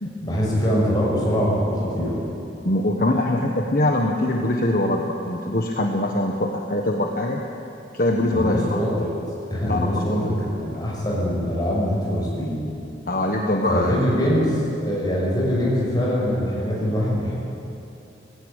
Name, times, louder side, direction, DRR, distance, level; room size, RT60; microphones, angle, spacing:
voice 1, 0.2-2.2 8.3-9.2 9.5-12.6 13.7-17.3, equal, 20° left, -5 dB, 6.2 m, -23 dB
voice 2, 2.6-7.4 7.9-8.8 9.7-10.3 13.1-14.0, left 1 dB, 50° left, 1 dB, 1.3 m, -23 dB
18.5 x 16.0 x 9.0 m, 2.8 s
head